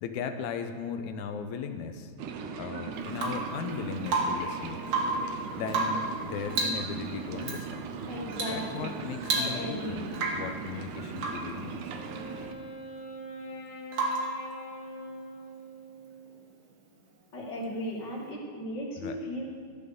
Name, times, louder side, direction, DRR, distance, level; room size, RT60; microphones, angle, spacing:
voice 1, 0.0-2.1 2.6-4.8 5.6-7.9 8.5-10.1 10.4-12.0 19.0-19.2, left 6 dB, 85° left, 7 dB, 2.1 m, -37 dB
sound 1, 2.2-12.5, right 6 dB, 85° right, 2.2 m, -38 dB
Rain / Water tap faucet / Drip, 3.1-3.5 4.1-4.5 4.8-5.3 5.7-6.1 6.5-6.9 7.4-7.6 8.3-8.6 8.9-9.0 9.2-9.8 10.1-10.5 11.2-11.5 13.9-14.4 16.3-16.4, right 2 dB, 50° right, 2.1 m, -30 dB
voice 2, 8.1-8.9 9.3-10.1 17.3-19.4, equal, 40° left, -5 dB, 2.8 m, -36 dB
Wind instrument woodwind instrument, 11.9-16.4, equal, 55° left, 1.5 m, -43 dB
14.0 x 5.2 x 6.9 m, 2.1 s
omnidirectional pair, 3.4 m